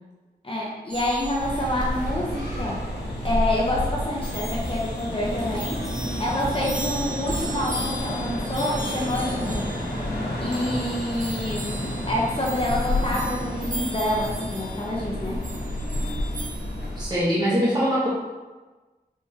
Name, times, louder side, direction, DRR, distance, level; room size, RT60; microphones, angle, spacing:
voice 1, 0.4-2.8 3.2-5.8 6.2-9.7 10.4-15.4, left 1 dB, 35° left, -4 dB, 0.9 m, -27 dB
sound 1, 0.9-17.2, right 1 dB, 50° right, 1.1 m, -36 dB
sound 2, 1.4-17.0, left 1 dB, 90° left, 0.9 m, -30 dB
voice 2, 17.0-18.1, equal, 25° right, -8 dB, 1.2 m, -22 dB
4.6 x 3.4 x 2.8 m, 1.2 s
cardioid pair, 50°, 17 cm